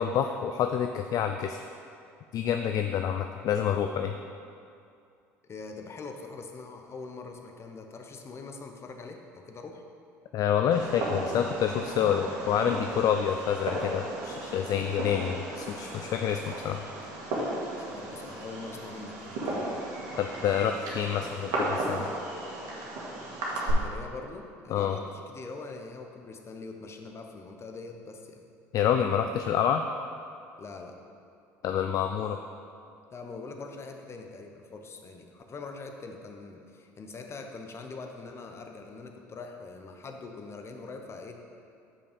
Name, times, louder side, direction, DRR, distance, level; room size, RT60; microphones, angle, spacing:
voice 1, 0.0-1.6 2.3-4.2 10.3-16.8 20.2-22.1 24.7-25.0 28.7-29.8 31.6-32.4, left 8 dB, 50° left, 6 dB, 0.4 m, -28 dB
voice 2, 5.5-9.8 17.8-19.8 23.5-28.5 30.6-31.0 33.1-41.4, left 3 dB, 35° left, 4 dB, 0.9 m, -43 dB
Fireworks, 10.7-23.7, right 2 dB, 65° right, 1.7 m, -35 dB
7.0 x 5.2 x 5.1 m, 2.5 s
hypercardioid pair, 70°, 8 cm